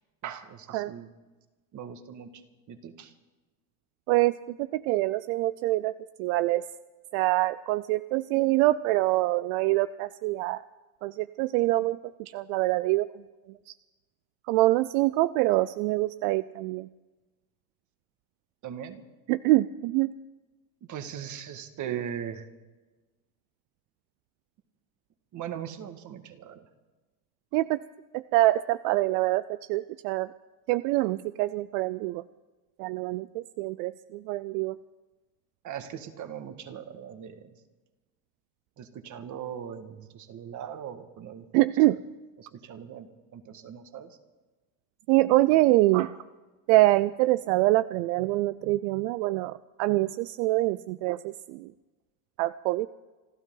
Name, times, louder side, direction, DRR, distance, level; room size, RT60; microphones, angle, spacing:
voice 1, 0.2-1.1 1.7-2.4 2.7-3.1 18.6-19.0 20.9-22.5 25.3-26.6 35.6-37.6 38.8-41.7 42.4-44.2 46.0-46.1, right 8 dB, 45° right, 8 dB, 1.7 m, -40 dB
voice 2, 4.1-6.6 7.1-10.6 11.0-13.2 13.7-13.8 14.5-16.9 19.3-20.2 21.9-22.0 27.5-27.8 28.1-30.3 30.7-32.2 32.8-34.8 41.5-42.0 45.1-46.1 46.7-51.7 52.4-52.9, right 18 dB, 80° right, 15 dB, 0.5 m, -25 dB
28.0 x 12.5 x 3.9 m, 1.2 s
supercardioid pair, 125°, 43 cm